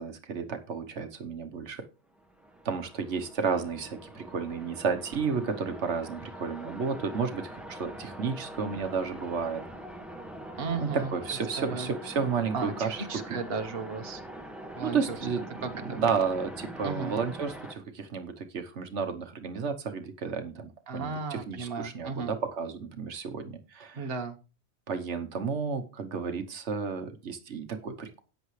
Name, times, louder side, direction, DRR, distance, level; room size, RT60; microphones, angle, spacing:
voice 1, 0.0-1.8 2.6-9.6 10.8-13.4 14.8-15.5 15.9-24.1 24.9-28.2, right 5 dB, 90° right, 7 dB, 1.4 m, -32 dB
sound 1, 2.1-17.7, right 1 dB, ahead, 1.6 m, -43 dB
voice 2, 10.6-11.2 11.6-11.9 12.5-14.2 14.8-15.2 15.6-16.0 16.8-17.1 20.9-22.3 24.0-24.4, right 4 dB, 60° right, 5 dB, 1.4 m, -35 dB
13.5 x 9.3 x 3.2 m, 0.33 s
omnidirectional pair, 1.1 m